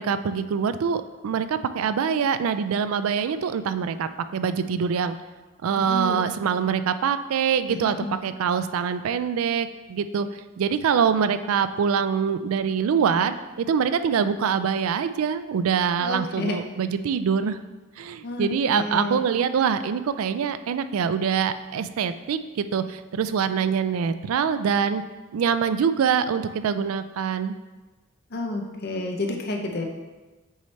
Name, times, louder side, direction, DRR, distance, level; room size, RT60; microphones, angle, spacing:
voice 1, 0.0-5.2 5.6-10.3 10.6-17.6 18.0-25.0 25.3-27.6, right 7 dB, 80° right, 11 dB, 0.3 m, -24 dB
voice 2, 5.8-6.2 7.7-8.2 16.0-16.6 18.2-19.2 28.3-29.8, left 2 dB, 45° left, 2 dB, 0.6 m, -30 dB
7.2 x 3.2 x 4.2 m, 1.2 s
head